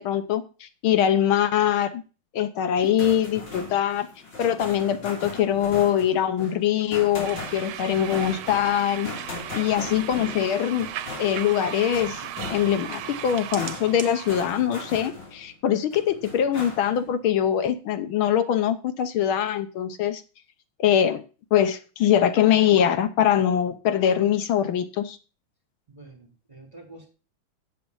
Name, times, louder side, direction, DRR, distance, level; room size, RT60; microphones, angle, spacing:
voice 1, 0.0-2.0 2.3-4.1 4.4-9.1 9.5-10.9 11.2-20.2 20.8-21.2 21.5-25.2, left 10 dB, 80° left, 11 dB, 1.7 m, -23 dB
sound 1, 2.7-15.5 15.9-17.1, left 3 dB, 60° left, 3.9 m, -39 dB
sound 2, 7.2-14.5, right 11 dB, 90° right, 1.5 m, -36 dB
voice 2, 25.9-27.1, right 2 dB, 20° right, 0 dB, 3.8 m, -47 dB
8.4 x 8.1 x 5.4 m, 0.34 s
omnidirectional pair, 2.3 m